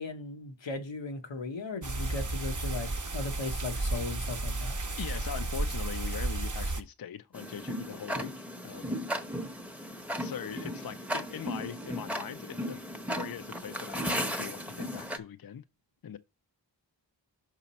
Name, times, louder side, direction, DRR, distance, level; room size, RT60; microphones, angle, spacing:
voice 1, 0.0-4.7, left 3 dB, 85° left, 0.9 m, -37 dB
sound 1, 1.8-6.8, right 2 dB, 45° right, 0.9 m, -33 dB
voice 2, 5.0-9.0 10.2-12.8 13.1-15.6 16.0-16.2, left 8 dB, 55° left, 0.5 m, -41 dB
Tick-tock, 7.3-15.2, equal, 5° right, 0.9 m, -36 dB
5.8 x 4.9 x 4.1 m
wide cardioid pair, 40°, 44 cm